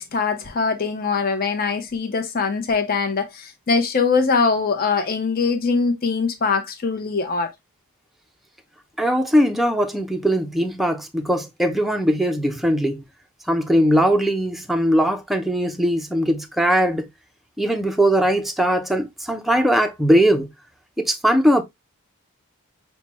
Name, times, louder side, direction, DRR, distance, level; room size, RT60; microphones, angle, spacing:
voice 1, 0.0-7.5, left 4 dB, 45° left, 0.7 m, -22 dB
voice 2, 9.0-13.0 13.5-17.1 17.6-20.5 21.0-21.6, equal, ahead, 0.5 m, -20 dB
5.7 x 2.2 x 2.9 m
head